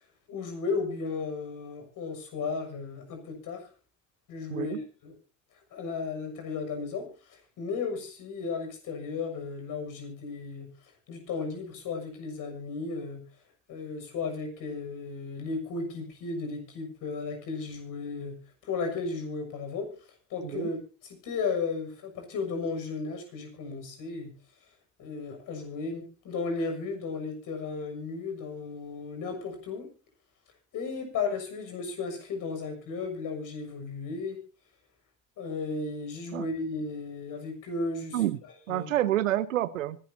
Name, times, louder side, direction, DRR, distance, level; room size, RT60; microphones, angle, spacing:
voice 1, 0.3-3.7 4.3-5.1 5.7-10.7 11.1-13.2 13.7-18.3 18.6-19.9 20.3-20.8 21.0-24.3 25.0-29.9 30.7-34.4 35.4-38.2 38.7-38.9, left 4 dB, 55° left, 5 dB, 6.6 m, -34 dB
voice 2, 4.5-4.8 20.4-20.7 36.3-36.5 38.1-38.4 38.7-40.0, right 13 dB, 85° right, 17 dB, 0.9 m, -28 dB
24.5 x 12.5 x 2.8 m, 0.35 s
hypercardioid pair, 65°, 38 cm